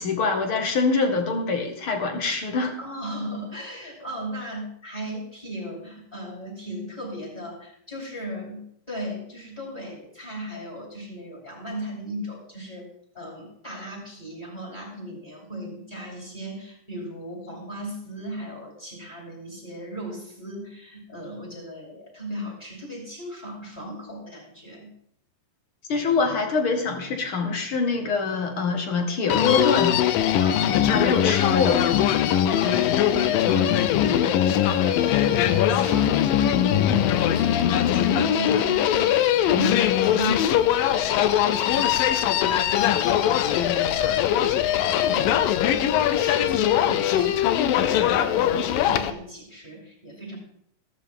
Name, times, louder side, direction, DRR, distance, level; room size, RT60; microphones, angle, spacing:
voice 1, 0.0-2.8 25.9-30.0 30.9-31.9, left 4 dB, 45° left, 4 dB, 2.1 m, -24 dB
voice 2, 2.8-12.9 13.1-24.9 30.4-31.0 32.6-50.4, equal, 5° left, -3 dB, 6.5 m, -36 dB
Human voice, 29.3-49.1, left 10 dB, 80° left, 2.4 m, -21 dB
15.5 x 13.5 x 3.7 m, 0.67 s
omnidirectional pair, 4.2 m